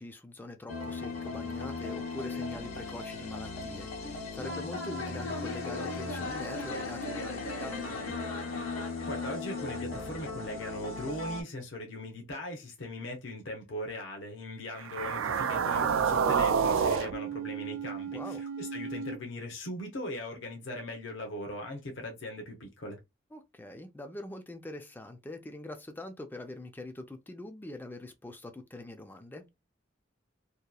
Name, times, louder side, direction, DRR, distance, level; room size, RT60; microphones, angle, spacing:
voice 1, 0.0-8.0 18.1-18.4 23.3-29.5, left 2 dB, 10° left, 0.3 m, -43 dB
sound 1, 0.7-11.4, left 3 dB, 90° left, 1.1 m, -37 dB
voice 2, 9.1-23.0, left 1 dB, 65° left, 0.8 m, -39 dB
sound 2, 14.8-19.2, right 6 dB, 80° right, 0.4 m, -29 dB
2.8 x 2.3 x 2.3 m
head